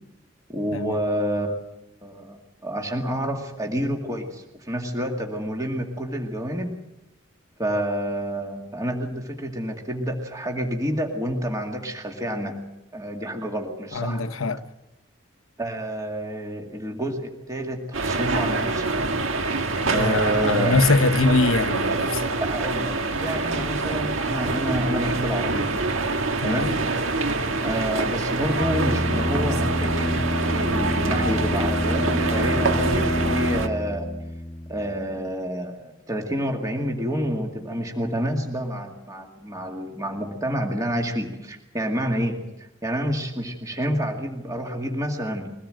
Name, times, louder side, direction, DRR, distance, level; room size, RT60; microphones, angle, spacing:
voice 1, 0.5-1.6 2.0-6.7 7.6-12.6 12.9-14.2 15.6-18.9 19.9-20.7 22.4-25.7 26.4-26.8 27.6-34.1 34.7-45.5, equal, 15° right, 2.2 m, -28 dB
voice 2, 13.9-14.6 19.9-22.2 26.4-26.8, left 3 dB, 85° left, 1.0 m, -23 dB
sound 1, 17.9-33.7, right 3 dB, 75° right, 1.7 m, -25 dB
sound 2, 28.6-35.2, left 1 dB, 30° left, 1.2 m, -27 dB
22.5 x 18.0 x 7.8 m
head